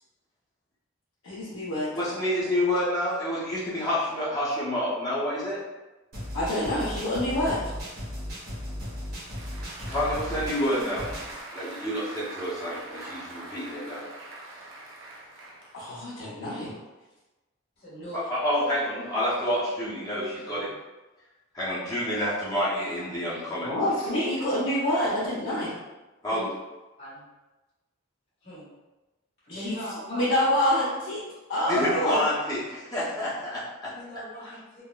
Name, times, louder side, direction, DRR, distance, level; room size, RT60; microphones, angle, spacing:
voice 1, 1.2-1.9 6.3-7.6 15.7-16.7 23.6-25.7 29.5-29.8 30.1-31.2 31.5-32.2, left 1 dB, 85° left, -9 dB, 0.6 m, -27 dB
voice 2, 1.9-5.6 9.9-11.1 11.5-14.1 18.3-20.7 21.5-23.7 26.2-26.5 31.7-33.9, equal, 20° left, -9 dB, 0.6 m, -28 dB
sound 1, 6.1-11.4, left 1 dB, 45° right, 0.8 m, -36 dB
Applause, 9.1-16.2, right 2 dB, 70° right, 0.5 m, -43 dB
voice 3, 17.8-18.2 26.3-26.5 27.0-27.2 28.4-28.7 29.4-30.5 33.8-34.8, equal, 50° left, -10 dB, 1.5 m, -39 dB
3.5 x 2.0 x 2.2 m, 1.1 s
head